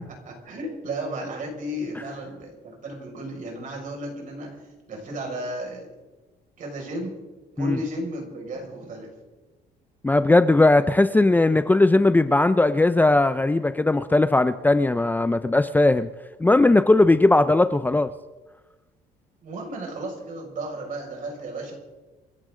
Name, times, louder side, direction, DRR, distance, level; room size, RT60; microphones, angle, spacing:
voice 1, 0.2-4.6 4.9-5.9 6.6-7.1 7.6-9.1 19.4-21.7, right 1 dB, 50° right, 0 dB, 6.0 m, -34 dB
voice 2, 10.0-16.1 16.4-18.1, left 2 dB, 10° left, 11 dB, 0.6 m, -18 dB
29.0 x 11.5 x 3.9 m, 1.2 s
cardioid pair, 110°, 17 cm